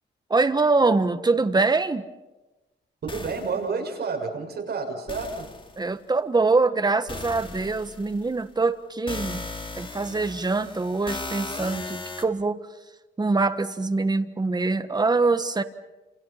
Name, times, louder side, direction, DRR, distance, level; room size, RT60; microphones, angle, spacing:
voice 1, 0.3-2.0 5.8-9.5 9.8-12.6 13.2-15.6, right 3 dB, 20° right, 10 dB, 1.4 m, -24 dB
voice 2, 3.0-5.5, right 4 dB, 55° right, 2 dB, 6.6 m, -30 dB
sound 1, 3.1-3.6 5.1-5.9 7.1-8.4 9.1-12.2, left 2 dB, 25° left, 2.6 m, -37 dB
30.0 x 28.0 x 5.8 m, 1.1 s
wide cardioid pair, 125°, 19 cm